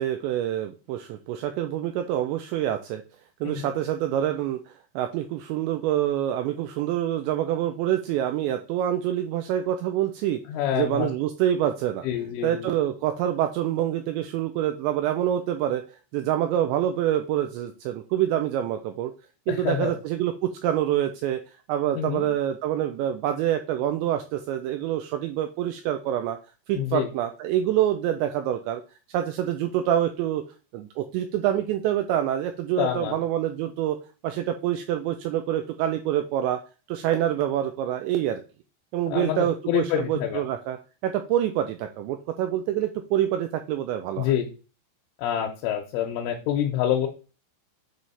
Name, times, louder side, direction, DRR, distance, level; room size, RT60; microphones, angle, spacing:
voice 1, 0.0-3.0 3.4-10.4 10.7-12.1 12.4-15.8 16.1-19.1 19.5-21.4 21.7-26.4 26.7-28.8 29.1-30.4 30.7-34.0 34.2-36.6 36.9-38.4 38.9-40.8 41.0-44.3, right 11 dB, 90° right, 7 dB, 2.5 m, -26 dB
voice 2, 10.5-11.1 12.0-12.7 19.5-19.9 22.0-22.3 26.8-27.1 32.8-33.2 39.1-40.4 44.2-44.5 45.2-47.1, left 10 dB, 80° left, 1 dB, 3.2 m, -27 dB
9.0 x 3.3 x 5.4 m, 0.34 s
omnidirectional pair, 5.8 m